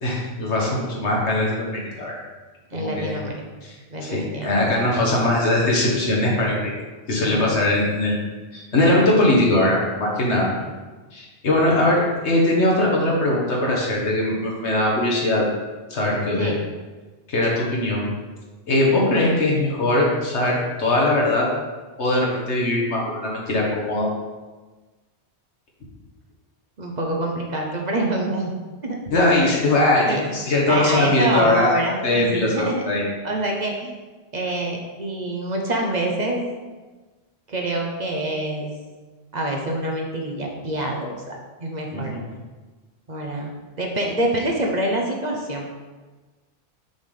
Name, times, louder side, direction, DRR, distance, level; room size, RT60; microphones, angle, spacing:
voice 1, 0.0-2.2 2.7-3.2 3.6-3.8 4.0-6.7 7.1-8.2 8.5-10.5 11.1-15.4 15.9-16.5 17.3-18.1 18.7-21.5 22.0-24.1 29.1-31.7 32.0-33.0 41.9-42.2, left 1 dB, 80° left, -3 dB, 1.7 m, -21 dB
voice 2, 2.7-3.3 3.9-4.5 7.2-7.5 16.3-16.6 26.8-28.5 28.8-28.9 30.0-30.2 30.7-32.8 33.2-34.0 34.3-36.4 37.5-38.7 39.3-42.1 43.1-43.5 43.8-45.8, right 1 dB, 45° right, 0 dB, 0.9 m, -26 dB
6.3 x 3.4 x 5.4 m, 1.3 s
omnidirectional pair, 1.1 m